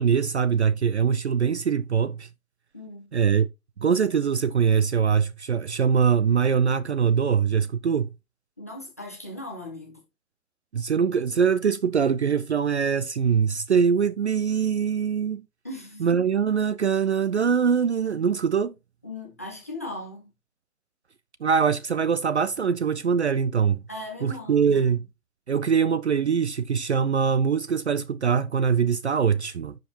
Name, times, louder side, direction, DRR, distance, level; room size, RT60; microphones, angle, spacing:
voice 1, 0.0-2.3 3.1-3.5 3.8-8.1 10.7-15.4 16.0-18.7 21.4-23.8 24.2-25.0 25.5-29.7, right 6 dB, 50° right, 0.4 m, -23 dB
voice 2, 2.7-3.1 8.6-10.0 15.6-16.1 19.0-20.3 23.9-25.0, left 1 dB, 10° left, 0.6 m, -38 dB
10.0 x 5.1 x 2.8 m
hypercardioid pair, 165°, 45 cm